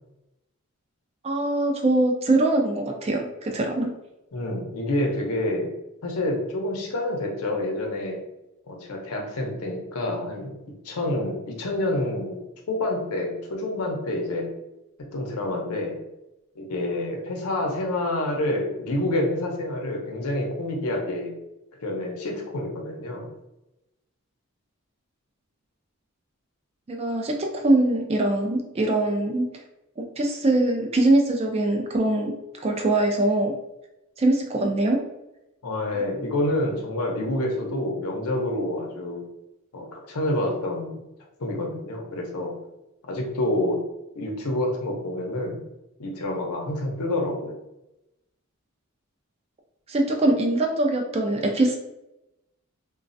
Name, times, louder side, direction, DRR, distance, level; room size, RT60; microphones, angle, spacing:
voice 1, 1.2-3.9 26.9-29.5 30.0-33.6 34.2-35.0 49.9-51.8, right 2 dB, 25° right, 2 dB, 0.3 m, -23 dB
voice 2, 4.3-5.7 6.0-8.2 8.7-10.5 10.8-12.4 12.7-14.5 15.1-16.0 16.6-21.3 21.8-23.3 35.6-39.2 39.7-41.0 41.4-42.6 43.1-43.8 44.1-45.7 46.0-47.6, left 1 dB, 90° left, 1 dB, 0.7 m, -28 dB
3.1 x 2.2 x 2.6 m, 0.92 s
head